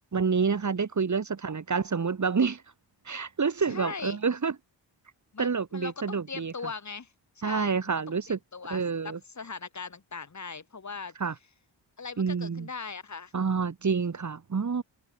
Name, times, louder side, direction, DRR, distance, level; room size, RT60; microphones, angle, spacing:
voice 1, 0.1-2.6 3.0-4.5 5.4-6.5 7.4-8.4 8.7-9.2 11.2-11.3 12.2-12.7 13.3-14.8, right 5 dB, 40° right, 1.5 m, -28 dB
voice 2, 3.7-4.2 5.3-11.1 12.0-13.3, left 5 dB, 35° left, 3.1 m, -40 dB
wide cardioid pair, 105°, 46 cm